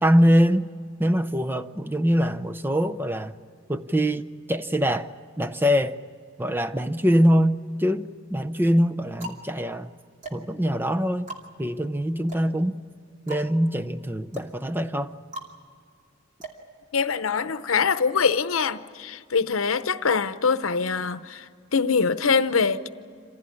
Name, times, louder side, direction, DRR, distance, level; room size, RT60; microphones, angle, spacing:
voice 1, 0.0-0.7 1.0-3.3 3.7-5.1 5.4-6.0 6.4-9.9 10.3-11.3 11.6-12.8 13.3-15.2, equal, 10° right, 0.6 m, -23 dB
sound 1, 7.6-8.0 8.6-17.4, right 2 dB, 40° right, 2.6 m, -43 dB
voice 2, 16.9-22.9, left 5 dB, 85° left, 0.8 m, -24 dB
27.0 x 16.0 x 9.8 m
head